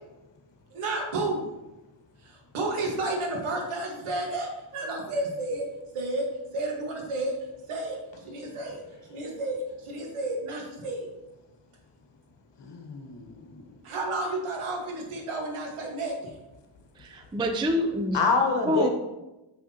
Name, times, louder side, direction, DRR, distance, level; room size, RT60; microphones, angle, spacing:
voice 1, 0.7-1.5 2.2-5.6 5.9-6.2 6.5-7.3 7.7-8.0 8.2-8.8 9.1-11.1 13.8-16.1, right 2 dB, 80° right, 1 dB, 1.7 m, -31 dB
voice 2, 12.6-13.3 18.1-18.9, left 4 dB, 60° left, 3 dB, 1.3 m, -25 dB
voice 3, 17.0-18.2 18.7-18.9, equal, 10° right, 5 dB, 0.3 m, -27 dB
6.2 x 6.0 x 2.9 m, 1.0 s
cardioid pair, 100°, 49 cm